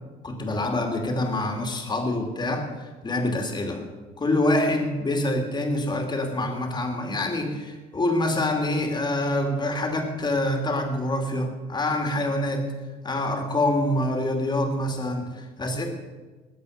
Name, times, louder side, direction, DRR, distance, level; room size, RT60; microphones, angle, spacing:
voice 1, 0.2-3.8 4.2-12.7 13.0-15.8, left 1 dB, 25° left, 3 dB, 2.8 m, -26 dB
20.0 x 8.2 x 6.7 m, 1.3 s
cardioid pair, 110°, 17 cm